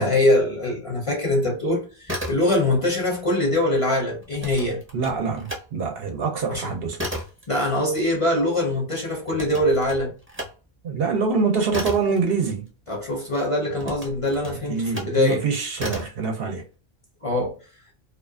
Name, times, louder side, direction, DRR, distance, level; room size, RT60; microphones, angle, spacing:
voice 1, 0.0-4.8 6.5-6.8 7.5-10.1 12.9-15.4 17.2-17.6, left 1 dB, 35° left, 0.6 m, -23 dB
sound 1, 1.9-2.9 3.2-5.7 6.1-13.1 13.7-15.2 15.7-16.2, equal, 15° right, 0.6 m, -34 dB
voice 2, 4.9-7.0 10.8-12.7 14.7-16.6, right 5 dB, 65° right, 0.8 m, -25 dB
2.4 x 2.4 x 2.3 m
omnidirectional pair, 1.1 m